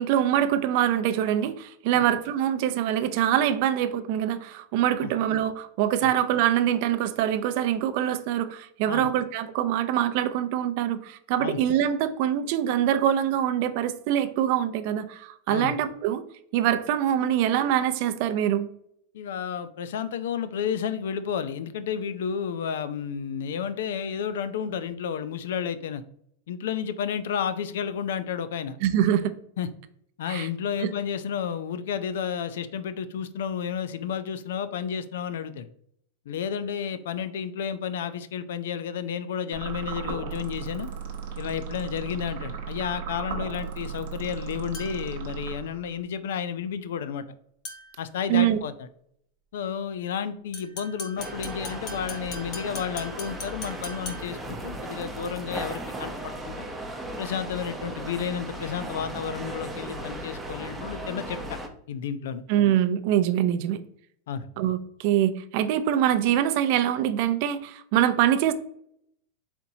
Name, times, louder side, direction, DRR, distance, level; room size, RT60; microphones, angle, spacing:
voice 1, 0.0-16.2 16.5-18.7 28.8-29.3 30.3-30.5 30.8-30.9 48.3-48.6 62.5-63.8 64.6-68.5, right 11 dB, 55° right, 11 dB, 0.5 m, -24 dB
voice 2, 19.1-26.0 26.5-28.8 29.6-29.7 30.2-35.7 36.3-40.9 41.4-47.2 48.0-48.9 49.5-56.7 57.2-61.6 61.9-62.4 64.3-64.5, left 7 dB, 80° left, 13 dB, 0.4 m, -31 dB
sound 1, 39.5-46.0, right 6 dB, 70° right, 0.8 m, -36 dB
sound 2, 44.7-45.2 47.6-48.1 50.5-54.5, left 2 dB, 45° left, 0.8 m, -40 dB
sound 3, 51.2-61.7, right 1 dB, 5° right, 0.6 m, -36 dB
4.3 x 4.0 x 2.7 m, 0.68 s
supercardioid pair, 145°, 0 cm